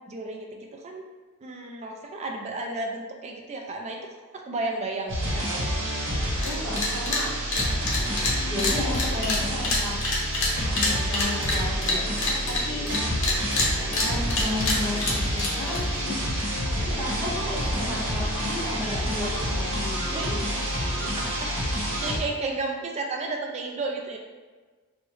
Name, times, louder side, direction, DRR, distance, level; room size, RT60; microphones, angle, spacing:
voice 1, 0.1-1.0 1.4-4.0 4.5-5.8 20.1-20.3 21.4-24.2, right 2 dB, 30° right, 2 dB, 0.3 m, -33 dB
sound 1, 5.1-22.2, equal, 55° right, 0.9 m, -28 dB
sound 2, 6.4-6.5 6.8-7.2 7.5-13.0 13.2-15.8, left 2 dB, 60° left, 0.7 m, -26 dB
voice 2, 6.4-7.3 8.5-10.1 10.8-12.9 13.9-16.5 16.8-20.4, left 2 dB, 5° left, -12 dB, 1.3 m, -34 dB
3.5 x 2.1 x 3.1 m, 1.4 s
head